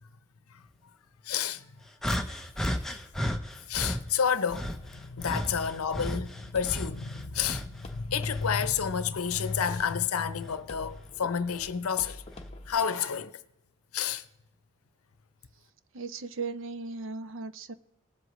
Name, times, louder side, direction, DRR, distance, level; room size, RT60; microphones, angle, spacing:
voice 1, 1.2-1.6 3.2-3.4 3.7-12.2 12.7-13.3 13.9-14.2, left 7 dB, 85° left, 0.7 m, -30 dB
sound 1, 2.0-4.0 4.5-7.8 8.2-9.7 10.4-10.6 11.5-11.7, equal, ahead, 0.5 m, -34 dB
sound 2, 4.5-12.8, left 1 dB, 30° left, 0.9 m, -48 dB
voice 2, 15.9-17.7, right 4 dB, 60° right, 0.5 m, -37 dB
19.5 x 7.9 x 3.1 m
head